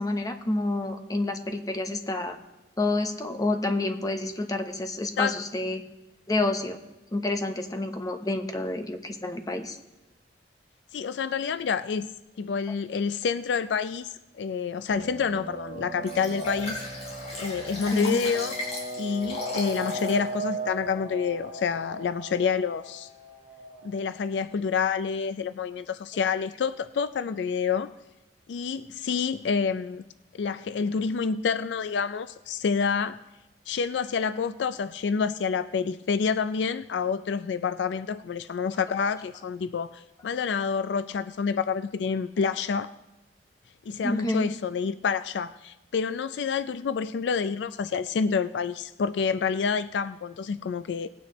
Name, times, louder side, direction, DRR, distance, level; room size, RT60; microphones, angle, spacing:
voice 1, 0.0-2.4 2.8-5.8 6.3-6.8 7.1-9.8 17.9-18.2 44.0-44.5, left 2 dB, 20° left, 6 dB, 0.8 m, -28 dB
voice 2, 10.9-12.1 12.4-16.8 17.4-18.5 19.0-23.1 23.8-27.9 28.5-30.0 30.4-33.2 33.7-42.9 43.9-51.1, left 6 dB, 75° left, 13 dB, 0.4 m, -28 dB
sound 1, 14.9-24.1, right 2 dB, 40° right, 1.7 m, -38 dB
Liquid, 16.1-20.2 20.7-20.8, left 2 dB, 40° left, 4.0 m, -36 dB
19.0 x 9.3 x 3.1 m, 0.98 s
head